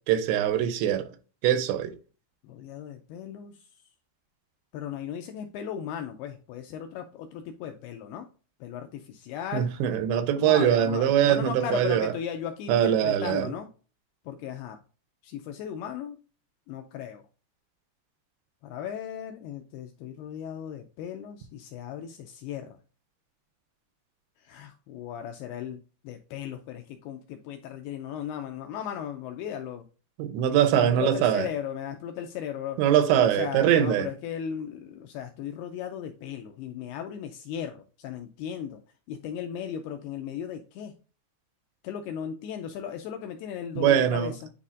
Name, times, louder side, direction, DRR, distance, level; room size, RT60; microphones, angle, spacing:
voice 1, 0.1-1.1 1.4-1.9 9.5-12.1 12.7-13.5 30.2-31.5 32.8-34.1 43.8-44.3, right 10 dB, 85° right, 2.9 m, -22 dB
voice 2, 2.4-3.6 4.7-8.3 8.6-9.7 10.4-13.7 14.3-14.8 15.2-16.2 16.7-17.2 18.6-22.8 24.4-29.8 30.7-32.8 33.1-38.8 39.1-40.9 41.8-44.5, left 9 dB, 85° left, 2.3 m, -36 dB
9.8 x 4.1 x 2.4 m
omnidirectional pair, 5.0 m